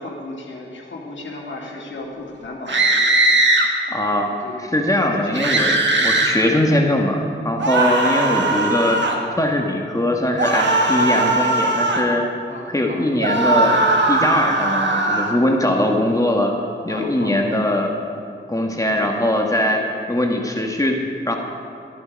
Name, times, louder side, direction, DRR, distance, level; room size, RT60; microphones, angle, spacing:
voice 1, 0.0-3.1 4.0-4.6 5.1-5.3 6.1-6.3 7.7-8.3 10.8-11.0 12.5-13.1 16.9-17.4 18.9-19.1 19.7-19.9, left 2 dB, 70° left, -2 dB, 2.3 m, -35 dB
sound 1, 2.7-3.7 5.3-6.3 7.6-9.2 10.4-12.1 13.2-15.3, right 2 dB, 65° right, 1.5 m, -19 dB
voice 2, 3.9-4.3 4.6-9.0 9.4-12.2 12.7-13.8 14.1-16.6 16.8-17.9 18.5-21.0 21.3-21.4, left 1 dB, 15° left, 1 dB, 1.6 m, -21 dB
14.0 x 11.0 x 5.3 m, 2.5 s
wide cardioid pair, 80°, 20 cm